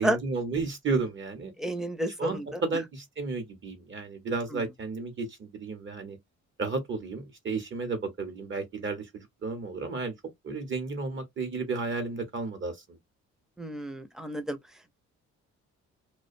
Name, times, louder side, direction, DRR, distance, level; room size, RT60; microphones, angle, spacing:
voice 1, 0.0-1.5 2.2-6.2 6.6-10.1 10.4-13.0, right 4 dB, 40° right, 0.8 m, -33 dB
voice 2, 1.6-2.6 4.5-4.6 13.6-14.6, right 1 dB, ahead, 0.6 m, -31 dB
2.4 x 2.1 x 2.5 m
cardioid pair, 90°, 30 cm